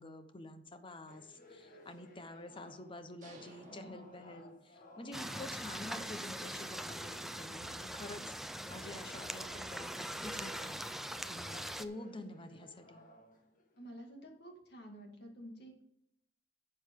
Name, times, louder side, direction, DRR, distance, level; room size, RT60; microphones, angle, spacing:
voice 1, 0.0-8.3 8.7-10.8 11.3-13.0, left 2 dB, 30° left, 9 dB, 0.9 m, -48 dB
sound 1, 1.1-3.1 3.5-8.1 8.5-13.9, left 1 dB, 50° left, 1.6 m, -59 dB
sound 2, 3.2-5.0, right 2 dB, 45° right, 1.8 m, -58 dB
sound 3, 5.1-11.8, right 1 dB, ahead, 0.5 m, -42 dB
voice 2, 13.8-15.8, equal, 65° left, 2 dB, 2.3 m, -51 dB
11.0 x 7.8 x 3.7 m, 0.75 s
head